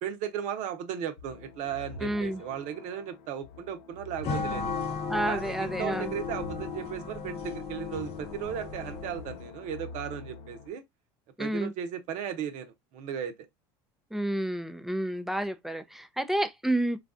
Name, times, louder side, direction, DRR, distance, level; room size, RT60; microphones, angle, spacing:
voice 1, 0.0-4.7 5.3-10.8 11.4-13.3, right 8 dB, 60° right, 0.7 m, -36 dB
sound 1, 1.2-10.7, left 3 dB, 75° left, 0.6 m, -46 dB
voice 2, 2.0-2.4 5.1-6.1 11.4-11.7 14.1-17.0, right 1 dB, ahead, 0.4 m, -30 dB
sound 2, 4.2-9.4, left 5 dB, 45° left, 0.7 m, -35 dB
3.2 x 2.4 x 2.4 m
supercardioid pair, 95°, 14 cm